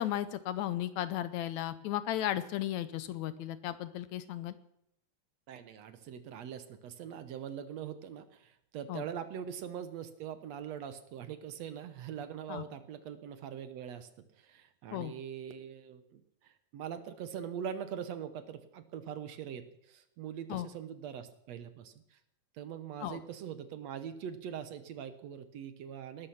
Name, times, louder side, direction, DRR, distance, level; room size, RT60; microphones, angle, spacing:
voice 1, 0.0-4.6 8.9-9.0 12.5-12.6 14.9-15.1 20.5-20.7 23.0-23.2, left 12 dB, 75° left, 14 dB, 2.0 m, -35 dB
voice 2, 5.5-22.2 22.5-26.3, right 8 dB, 65° right, 11 dB, 2.0 m, -42 dB
18.5 x 12.5 x 5.8 m, 0.75 s
omnidirectional pair, 3.5 m